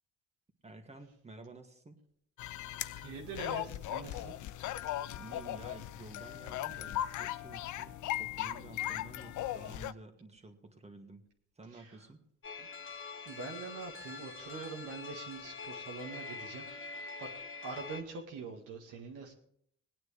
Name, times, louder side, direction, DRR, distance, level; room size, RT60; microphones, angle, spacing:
voice 1, 0.6-2.0 5.2-11.3 11.6-12.2, right 3 dB, 20° right, 5 dB, 2.0 m, -52 dB
sound 1, 2.4-9.9, left 13 dB, 75° left, 0.5 m, -38 dB
voice 2, 3.0-4.3 11.7-11.9 13.3-17.3 17.6-19.3, right 4 dB, 85° right, 0 dB, 2.0 m, -44 dB
sound 2, 12.4-18.0, left 4 dB, 45° left, 1.6 m, -45 dB
20.5 x 9.2 x 3.4 m, 0.68 s
cardioid pair, 90°, 30 cm